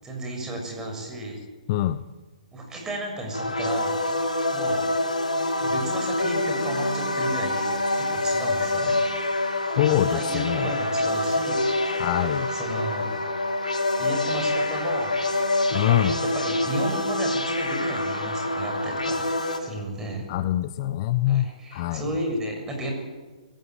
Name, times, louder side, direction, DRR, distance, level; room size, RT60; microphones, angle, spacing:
voice 1, 0.0-1.4 2.5-4.1 4.5-4.9 5.6-9.0 9.9-12.1 12.5-13.1 14.0-15.1 15.7-16.0 16.3-20.3 21.3-22.9, right 1 dB, 15° right, 1 dB, 6.8 m, -33 dB
voice 2, 1.7-2.0 9.8-10.7 12.0-12.5 15.7-16.2 20.3-22.1, left 13 dB, 40° left, 15 dB, 0.8 m, -24 dB
sound 1, 3.3-19.6, left 2 dB, 85° left, 3.4 m, -26 dB
23.5 x 16.0 x 9.4 m, 1.3 s
figure-of-eight pair, 125°, 4 cm